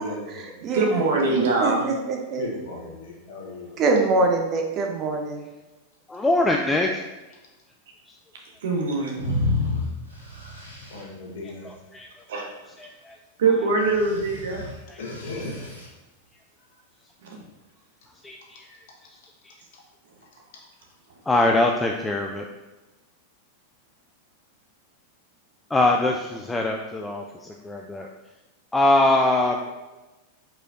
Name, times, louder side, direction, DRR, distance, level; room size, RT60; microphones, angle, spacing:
voice 1, 0.0-0.6 1.9-2.0 2.4-3.7 10.9-11.7 15.0-15.7 16.7-16.8 29.6-29.7, left 2 dB, 50° left, -2 dB, 1.2 m, -36 dB
voice 2, 0.7-1.9 8.6-9.4 12.3-12.5 13.4-14.6 17.2-17.5, right 3 dB, 60° right, 0 dB, 1.0 m, -23 dB
voice 3, 1.6-2.4 3.8-5.5, right 3 dB, 30° right, 2 dB, 0.7 m, -24 dB
voice 4, 6.1-7.0 11.9-12.1 12.8-13.2 14.9-15.0 18.2-18.8 19.4-19.5 21.3-22.5 25.7-28.1 28.7-29.8, left 2 dB, 10° left, 1 dB, 0.3 m, -23 dB
sound 1, 9.2-11.0 13.8-15.9, left 2 dB, 90° right, 1.0 m, -30 dB
4.6 x 4.3 x 2.6 m, 1.1 s
figure-of-eight pair, 90°, 0 cm